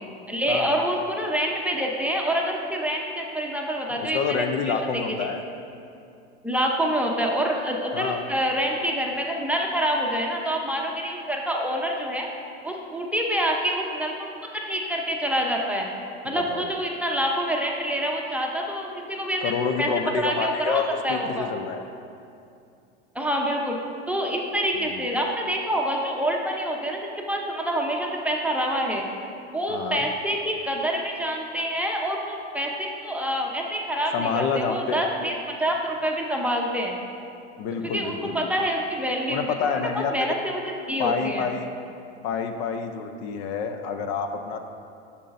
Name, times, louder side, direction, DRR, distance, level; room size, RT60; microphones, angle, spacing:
voice 1, 0.3-5.3 6.4-12.3 12.6-15.9 16.2-19.5 19.8-19.9 20.2-21.5 23.1-23.8 24.1-29.0 29.5-37.0 37.8-39.7 40.1-41.5, equal, 5° right, -1 dB, 0.7 m, -27 dB
voice 2, 3.9-5.4 7.9-8.2 16.3-16.7 19.4-21.8 24.8-25.0 29.7-30.1 34.1-35.1 37.6-38.5 39.3-40.1 41.0-41.7 42.2-44.6, left 6 dB, 60° left, 6 dB, 0.6 m, -28 dB
8.3 x 6.9 x 2.5 m, 2.5 s
hypercardioid pair, 95°, 34 cm